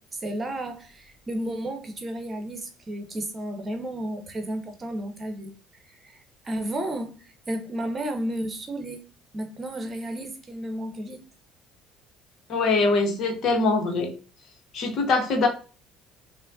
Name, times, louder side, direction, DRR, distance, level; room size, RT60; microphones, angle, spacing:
voice 1, 0.1-5.5 6.0-6.2 6.4-9.0 9.3-11.2, right 1 dB, 30° right, 1.0 m, -32 dB
voice 2, 12.5-14.1 14.7-15.5, left 3 dB, 50° left, 1.0 m, -23 dB
5.4 x 2.2 x 2.5 m
figure-of-eight pair, 55°, 0 cm